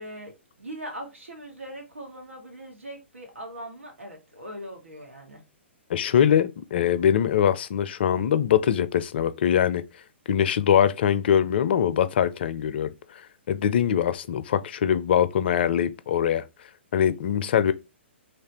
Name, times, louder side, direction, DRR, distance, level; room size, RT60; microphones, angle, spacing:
voice 1, 0.0-5.4, right 1 dB, 80° right, 1.5 m, -40 dB
voice 2, 5.9-9.8 10.3-12.9 13.5-16.4 16.9-17.7, left 9 dB, 55° left, 0.4 m, -22 dB
3.2 x 2.4 x 4.1 m
figure-of-eight pair, 120°, 7 cm